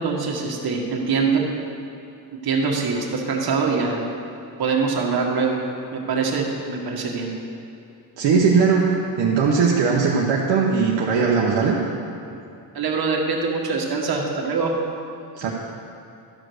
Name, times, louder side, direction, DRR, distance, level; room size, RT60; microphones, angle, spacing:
voice 1, 0.0-1.4 2.4-4.0 4.6-5.6 5.9-7.3 12.7-14.7, right 4 dB, 55° right, -1 dB, 1.8 m, -23 dB
voice 2, 8.2-11.8 15.4-15.5, right 5 dB, 75° right, -3 dB, 1.1 m, -19 dB
13.0 x 5.0 x 6.3 m, 2.6 s
cardioid pair, 95°, 44 cm